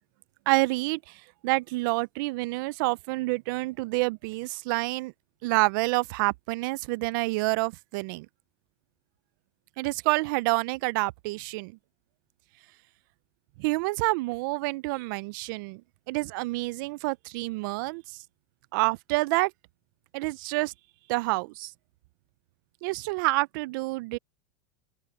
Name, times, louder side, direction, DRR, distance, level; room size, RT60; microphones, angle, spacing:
voice 1, 0.5-1.1 1.4-5.1 5.4-8.3 9.8-11.7 13.6-15.8 16.1-18.0 18.7-19.5 20.1-20.7 21.1-21.7 22.8-24.2, right 24 dB, 65° right, 0.5 m, -28 dB
open air
supercardioid pair, 135°, 12 cm